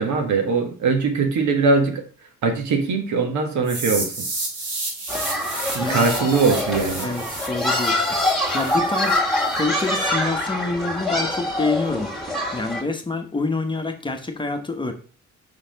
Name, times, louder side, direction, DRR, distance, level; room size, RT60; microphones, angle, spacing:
voice 1, 0.0-2.0 2.4-4.1 5.7-7.1, right 4 dB, 70° right, 5 dB, 1.5 m, -21 dB
sound 1, 3.7-9.6, right 2 dB, 85° right, 3.0 m, -31 dB
sound 2, 5.1-12.8, left 1 dB, ahead, 1.9 m, -25 dB
voice 2, 7.0-8.2 8.5-9.2 9.5-12.1 12.5-14.9, left 3 dB, 15° left, 4 dB, 1.0 m, -27 dB
5.7 x 4.0 x 5.1 m, 0.40 s
cardioid pair, 90°, 30 cm